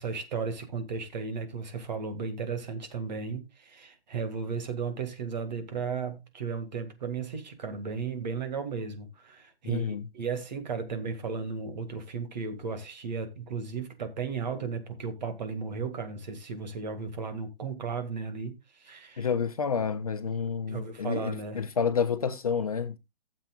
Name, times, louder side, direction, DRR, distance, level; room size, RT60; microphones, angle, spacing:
voice 1, 0.0-19.3 20.7-21.6, right 5 dB, 45° right, 2.0 m, -35 dB
voice 2, 9.6-10.1 19.2-23.0, left 6 dB, 40° left, 0.6 m, -29 dB
15.5 x 7.5 x 2.3 m
hypercardioid pair, 175°, 30 cm